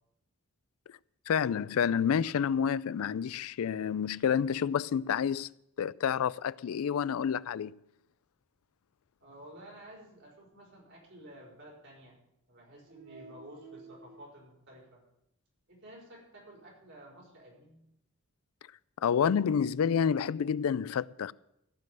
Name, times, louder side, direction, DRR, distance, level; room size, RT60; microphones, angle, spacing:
voice 1, 1.3-5.5 5.8-7.7 19.0-21.3, left 7 dB, 80° left, 0.4 m, -29 dB
voice 2, 9.2-12.2 12.5-15.0 15.7-17.8, right 1 dB, 55° right, 4.8 m, -51 dB
15.0 x 5.3 x 9.1 m
head